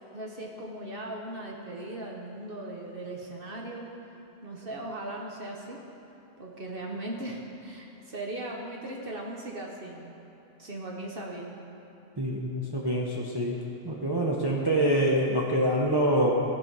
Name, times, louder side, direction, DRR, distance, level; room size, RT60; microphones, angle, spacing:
voice 1, 0.1-3.8 4.4-5.8 6.4-10.1 10.6-11.5, right 1 dB, 50° right, -1 dB, 1.1 m, -38 dB
voice 2, 12.2-13.6 13.8-16.4, right 1 dB, 25° right, -3 dB, 0.7 m, -25 dB
15.0 x 5.2 x 5.5 m, 3.0 s
omnidirectional pair, 1.2 m